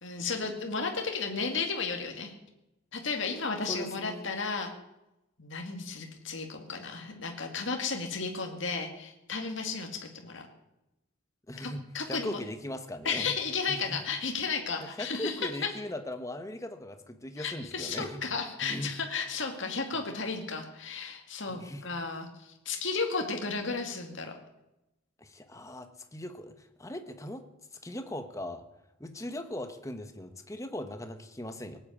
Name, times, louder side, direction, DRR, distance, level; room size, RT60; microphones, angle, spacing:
voice 1, 0.0-2.3 2.9-4.7 5.4-10.5 11.9-12.4 13.0-15.4 17.4-24.3, left 4 dB, 65° left, 3 dB, 2.1 m, -33 dB
voice 2, 3.6-4.3 11.5-11.8 12.1-13.3 13.7-14.0 14.8-18.2 18.6-18.9 21.5-21.9 25.2-27.4 27.8-28.6 29.0-31.8, left 1 dB, 15° left, 8 dB, 1.2 m, -39 dB
18.5 x 9.0 x 8.5 m, 0.92 s
head